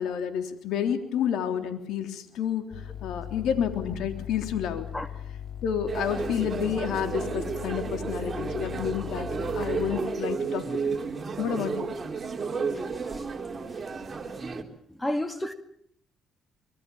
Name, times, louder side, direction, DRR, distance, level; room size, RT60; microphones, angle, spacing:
voice 1, 0.0-2.7 3.0-4.9 5.6-11.0 11.4-12.0, left 8 dB, 85° left, 3.4 m, -30 dB
sound 1, 2.7-10.0, left 8 dB, 65° left, 2.5 m, -39 dB
sound 2, 5.9-14.6, right 5 dB, 35° right, 3.7 m, -32 dB
voice 2, 15.0-15.5, left 1 dB, 15° left, 2.2 m, -31 dB
25.5 x 23.0 x 7.1 m
cardioid pair, 90°, 0 cm